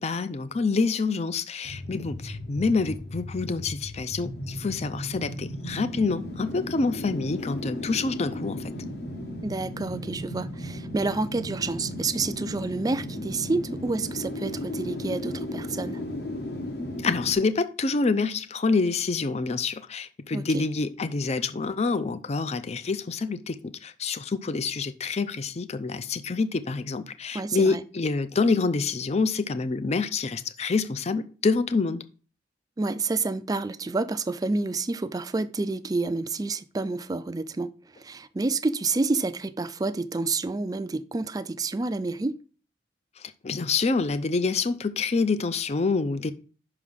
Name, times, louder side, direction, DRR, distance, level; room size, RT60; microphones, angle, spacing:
voice 1, 0.0-8.7 17.0-32.0 43.2-46.3, left 4 dB, 35° left, 0.5 m, -27 dB
sound 1, 1.6-17.3, left 1 dB, 60° left, 1.4 m, -35 dB
voice 2, 9.4-16.0 20.3-20.6 27.3-27.8 32.8-37.7 38.0-42.4, right 3 dB, 20° right, 0.4 m, -29 dB
5.9 x 4.9 x 5.4 m
head